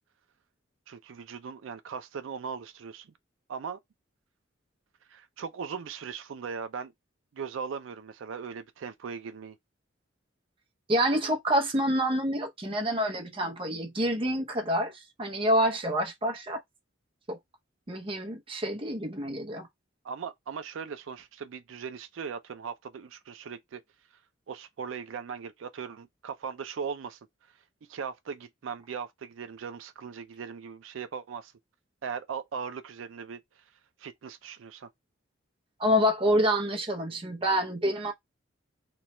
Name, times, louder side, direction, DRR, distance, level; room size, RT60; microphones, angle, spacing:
voice 1, 0.9-3.1 3.5-3.8 5.1-6.9 7.3-9.6 20.0-23.8 24.5-27.2 27.9-31.5 32.0-33.6 34.0-34.9, right 6 dB, 80° right, 0.4 m, -39 dB
voice 2, 10.9-16.6 17.3-17.4 17.9-19.7 35.8-38.1, equal, 25° right, 0.7 m, -27 dB
3.1 x 2.3 x 4.1 m
head